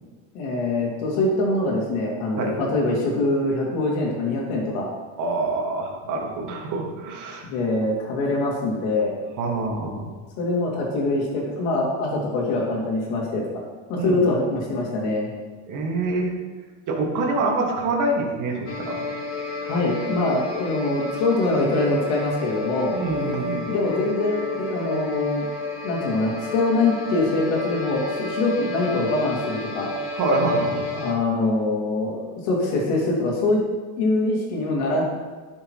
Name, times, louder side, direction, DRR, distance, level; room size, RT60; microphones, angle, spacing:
voice 1, 0.3-4.9 7.4-9.1 10.4-13.4 13.9-15.3 19.7-23.0 23.7-25.5 25.8-29.9 30.9-33.6 34.0-35.0, left 2 dB, 70° left, -2 dB, 2.8 m, -24 dB
voice 2, 5.2-7.5 9.4-10.1 14.0-14.3 15.7-16.3 16.9-19.0 22.9-23.7 30.1-30.8, right 2 dB, 45° right, 0 dB, 2.1 m, -25 dB
sound 1, 18.7-31.1, left 3 dB, 30° left, 1.6 m, -31 dB
11.0 x 6.4 x 3.2 m, 1.4 s
supercardioid pair, 105°, 42 cm